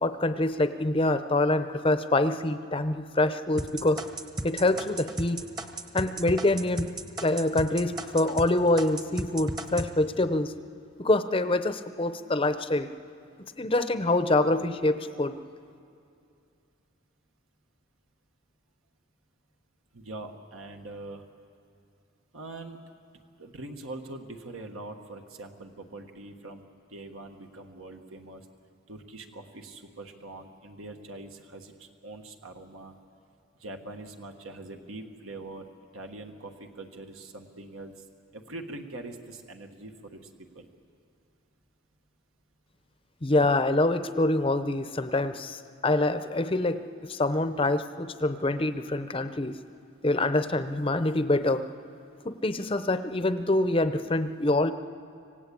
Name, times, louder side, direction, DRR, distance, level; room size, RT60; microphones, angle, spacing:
voice 1, 0.0-4.0 4.4-5.5 5.9-6.9 7.2-10.5 11.0-12.9 13.6-15.4 43.2-49.6 50.0-51.6 52.2-54.7, left 2 dB, 25° left, 11 dB, 0.7 m, -25 dB
sound 1, 3.6-8.5 8.8-9.9, right 1 dB, 20° right, 1.0 m, -34 dB
voice 2, 19.9-21.2 22.3-22.8 23.4-26.6 26.9-28.5 28.9-33.0 33.6-35.7 35.9-38.0 38.3-40.7, right 2 dB, 75° right, 4 dB, 1.4 m, -43 dB
26.0 x 17.0 x 8.5 m, 2.5 s
head